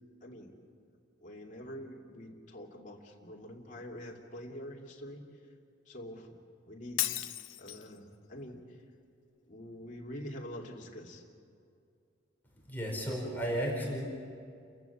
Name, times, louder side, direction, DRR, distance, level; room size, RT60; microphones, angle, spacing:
voice 1, 0.2-0.5 1.2-5.3 5.9-7.2 7.6-8.6 9.5-11.2, equal, 45° left, -2 dB, 2.6 m, -45 dB
Shatter, 7.0-8.0, left 13 dB, 85° left, 0.8 m, -34 dB
voice 2, 12.7-14.0, equal, 10° left, -3 dB, 4.8 m, -33 dB
29.5 x 15.5 x 7.2 m, 2.4 s
head